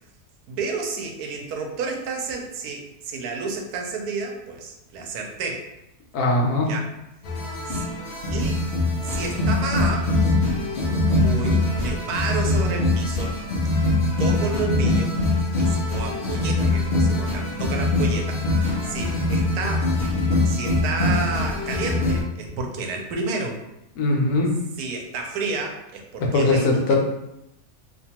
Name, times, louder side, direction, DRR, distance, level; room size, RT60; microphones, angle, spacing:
voice 1, 0.5-5.7 6.6-6.9 7.7-7.8 8.3-8.6 9.0-10.1 11.1-13.3 13.7-13.8 14.2-15.2 15.5-19.9 20.5-23.6 24.8-27.0, right 4 dB, 85° right, 2 dB, 1.1 m, -31 dB
voice 2, 6.1-6.7 24.0-24.5 26.2-27.0, left 2 dB, 85° left, 0 dB, 1.1 m, -20 dB
sound 1, 7.2-22.2, left 2 dB, 70° left, 0.5 m, -23 dB
2.8 x 2.2 x 2.8 m, 0.86 s
omnidirectional pair, 1.6 m